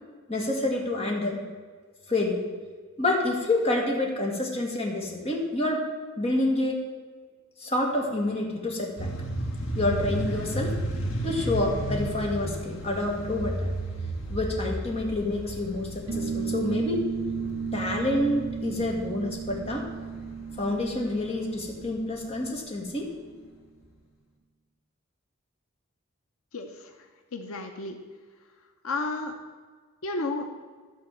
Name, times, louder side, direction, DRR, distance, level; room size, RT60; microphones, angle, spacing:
voice 1, 0.3-1.4 2.1-2.4 3.0-5.8 6.2-6.8 7.6-9.1 9.7-10.8 11.2-13.7 14.3-17.1 17.7-19.9 20.6-23.1, left 2 dB, 30° left, 0 dB, 1.7 m, -28 dB
sound 1, 9.0-22.1, right 1 dB, 70° left, 1.5 m, -34 dB
sound 2, 16.1-23.0, right 6 dB, 75° right, 1.7 m, -34 dB
voice 2, 26.5-26.9 27.3-28.0 28.8-29.3 30.0-30.4, left 3 dB, 85° left, 5 dB, 0.8 m, -32 dB
12.0 x 4.2 x 7.4 m, 1.5 s
head